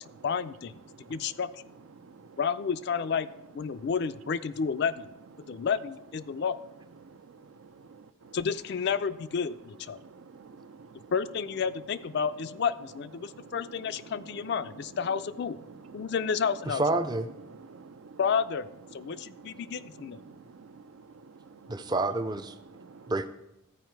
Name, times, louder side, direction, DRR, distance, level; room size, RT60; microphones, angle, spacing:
voice 1, 0.2-0.7 1.1-1.5 2.4-3.3 3.5-5.1 5.5-6.6 8.3-10.0 11.1-15.6 15.9-17.0 18.2-20.2, left 6 dB, 55° left, 13 dB, 0.4 m, -31 dB
voice 2, 0.9-1.4 1.9-2.4 3.7-3.9 5.4-5.7 6.3-6.4 7.0-8.4 9.9-11.1 13.2-15.2 15.6-16.1 17.5-18.2 18.9-21.8 22.7-23.1, right 4 dB, 85° right, 11 dB, 0.5 m, -51 dB
voice 3, 16.7-17.3 21.7-22.6 23.1-23.3, right 2 dB, 20° right, 11 dB, 0.4 m, -28 dB
14.5 x 4.8 x 4.6 m, 0.87 s
head